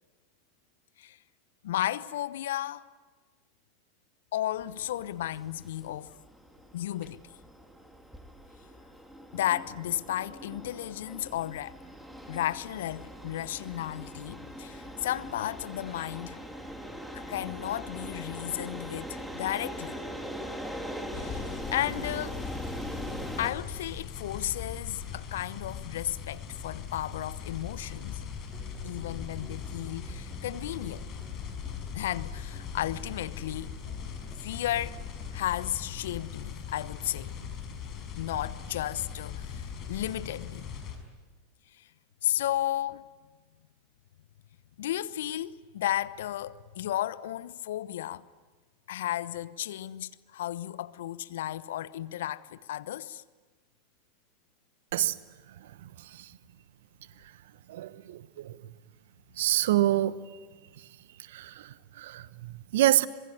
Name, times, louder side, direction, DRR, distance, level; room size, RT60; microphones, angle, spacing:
voice 1, 1.6-2.8 4.3-6.2 6.7-7.2 9.3-11.8 12.3-16.4 17.1-20.0 21.1-22.4 23.4-28.2 28.8-31.1 31.9-33.8 34.4-35.0 35.3-37.3 38.2-40.7 41.8-41.9 42.2-43.1 44.8-48.2 48.9-53.2, left 13 dB, 65° left, 0.9 m, -34 dB
sound 1, 4.6-23.5, equal, ahead, 3.2 m, -41 dB
sound 2, 21.1-41.0, left 7 dB, 40° left, 5.7 m, -40 dB
sound 3, 28.5-35.5, right 2 dB, 20° right, 5.4 m, -49 dB
voice 2, 57.7-58.5 59.4-60.2 61.3-63.1, right 14 dB, 65° right, 1.0 m, -27 dB
26.0 x 22.5 x 9.2 m
figure-of-eight pair, 85°, 0 cm